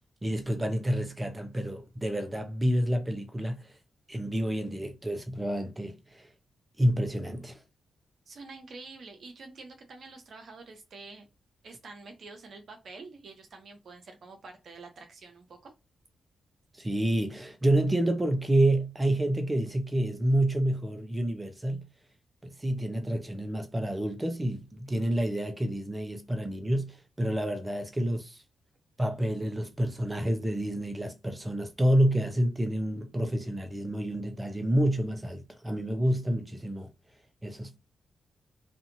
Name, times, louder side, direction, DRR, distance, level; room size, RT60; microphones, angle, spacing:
voice 1, 0.2-3.7 4.1-6.3 6.8-7.6 16.8-21.9 22.4-28.4 29.0-36.9 37.4-37.8, right 1 dB, 20° right, 0.7 m, -28 dB
voice 2, 8.3-11.3 11.6-15.7, right 3 dB, 65° right, 0.9 m, -47 dB
2.6 x 2.6 x 2.6 m
supercardioid pair, 45°, 0 cm